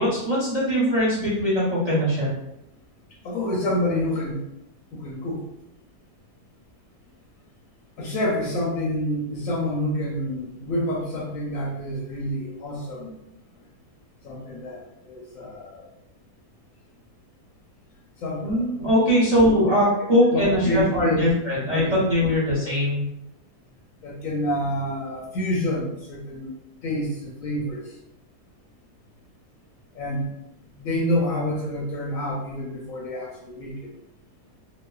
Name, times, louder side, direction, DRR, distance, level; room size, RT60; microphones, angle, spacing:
voice 1, 0.0-2.3 18.4-23.0, equal, 40° right, -9 dB, 0.5 m, -21 dB
voice 2, 3.2-4.4 4.9-5.4 8.0-13.1 14.2-15.9 18.2-18.7 20.3-21.2 21.7-21.9 24.0-26.5 26.8-27.9 29.9-30.3 30.8-33.8, left 1 dB, 70° left, -4 dB, 0.9 m, -28 dB
2.9 x 2.0 x 2.2 m, 0.83 s
omnidirectional pair, 1.7 m